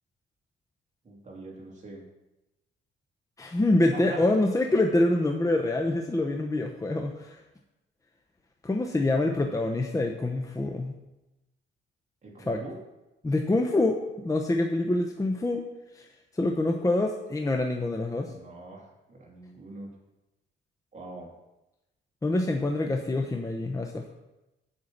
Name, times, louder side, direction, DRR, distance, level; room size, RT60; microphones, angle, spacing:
voice 1, 1.0-2.0 3.9-4.2 12.2-12.8 18.2-18.8 19.1-19.9 20.9-21.3, right 3 dB, 35° right, -1 dB, 2.8 m, -43 dB
voice 2, 3.4-7.4 8.6-10.9 12.5-12.6 13.2-15.6 15.9-16.1 16.4-18.3 22.2-24.1, left 2 dB, 15° left, 2 dB, 0.9 m, -26 dB
7.9 x 5.7 x 7.0 m, 0.98 s
cardioid pair, 90°, 20 cm